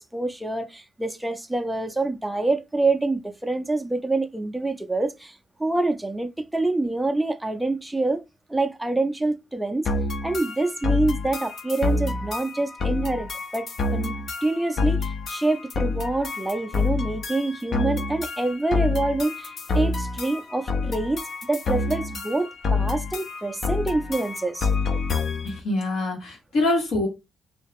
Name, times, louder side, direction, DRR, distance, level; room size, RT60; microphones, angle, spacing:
voice 1, 0.0-8.2 8.5-9.9 10.2-21.2 21.5-24.7, right 2 dB, 5° right, 0.5 m, -26 dB
sound 1, 9.9-25.6, left 3 dB, 45° left, 0.5 m, -27 dB
voice 2, 25.4-27.1, left 2 dB, 80° left, 2.0 m, -25 dB
3.1 x 2.8 x 3.5 m
cardioid pair, 145°, 0 cm